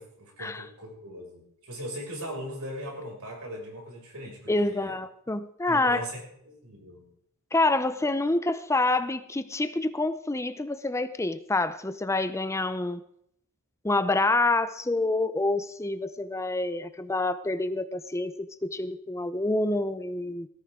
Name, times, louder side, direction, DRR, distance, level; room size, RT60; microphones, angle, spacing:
voice 1, 0.0-4.9 5.7-7.1, equal, 80° right, 0 dB, 6.2 m, -39 dB
voice 2, 4.5-6.1 7.5-13.0 13.8-20.5, left 2 dB, 15° left, 12 dB, 0.6 m, -27 dB
19.0 x 13.5 x 3.7 m, 0.72 s
head